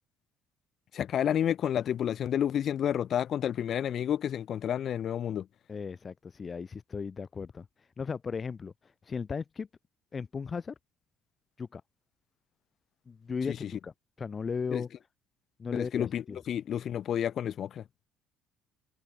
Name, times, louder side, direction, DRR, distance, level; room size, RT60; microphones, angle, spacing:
voice 1, 0.9-5.5 13.5-13.7 14.7-14.8 15.7-17.8, left 9 dB, 40° left, 0.5 m, -30 dB
voice 2, 5.7-9.7 10.1-10.7 11.6-11.8 13.1-14.9 15.6-16.4, left 5 dB, 20° left, 1.3 m, -36 dB
cardioid pair, 175°, 0 cm